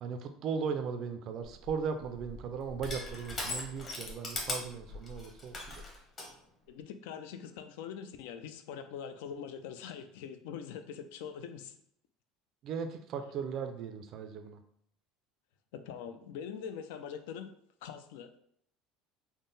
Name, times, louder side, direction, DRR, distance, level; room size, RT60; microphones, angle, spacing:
voice 1, 0.0-5.8 12.6-14.6, right 6 dB, 45° right, 7 dB, 0.3 m, -37 dB
Crushing, 1.4-6.3, left 2 dB, 25° left, 0.8 m, -40 dB
voice 2, 6.7-11.7 15.7-17.5 17.8-18.4, left 7 dB, 90° left, 9 dB, 0.4 m, -43 dB
3.7 x 2.0 x 3.8 m, 0.68 s
cardioid pair, 150°, 0 cm